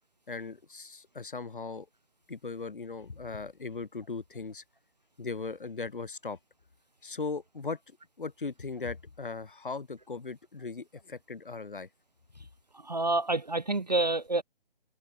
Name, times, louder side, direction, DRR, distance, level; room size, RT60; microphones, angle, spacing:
voice 1, 0.3-1.9 2.3-4.6 5.2-6.4 7.0-7.8 8.2-11.9, left 4 dB, 60° left, 1.9 m, -38 dB
voice 2, 12.7-14.4, right 2 dB, 45° right, 0.4 m, -28 dB
hypercardioid pair, 180°, 29 cm